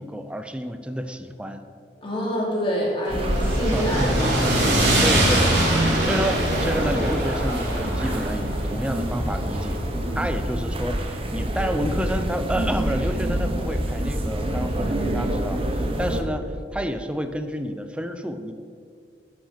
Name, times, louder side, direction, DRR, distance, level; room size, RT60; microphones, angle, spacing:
voice 1, 0.0-1.6 3.5-4.1 5.0-9.8 10.2-18.5, equal, 5° right, 8 dB, 0.6 m, -29 dB
voice 2, 2.0-5.0, equal, 30° left, -4 dB, 3.0 m, -27 dB
sound 1, 3.1-16.2, right 1 dB, 35° right, 1.0 m, -26 dB
sound 2, 3.1-11.3, right 1 dB, 80° right, 2.8 m, -24 dB
9.7 x 6.1 x 7.3 m, 2.1 s
head